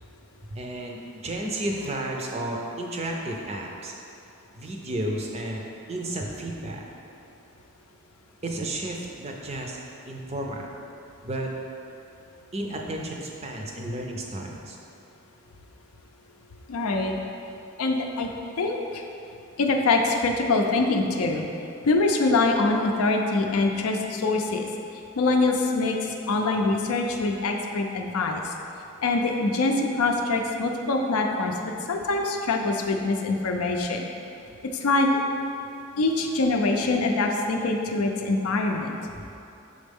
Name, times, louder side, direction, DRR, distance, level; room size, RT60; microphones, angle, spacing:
voice 1, 0.5-1.0 1.2-3.9 4.6-5.6 5.9-6.8 8.4-9.8 10.1-10.7 11.2-11.5 12.5-14.8, right 1 dB, 30° right, 0 dB, 0.5 m, -32 dB
voice 2, 16.7-17.1 17.8-18.3 18.6-19.0 19.6-21.4 21.8-24.7 25.2-26.0 26.3-28.4 29.0-31.5 31.9-34.1 34.8-35.1 36.0-39.0, left 3 dB, 80° left, 2 dB, 0.5 m, -24 dB
6.4 x 4.2 x 3.5 m, 2.7 s
head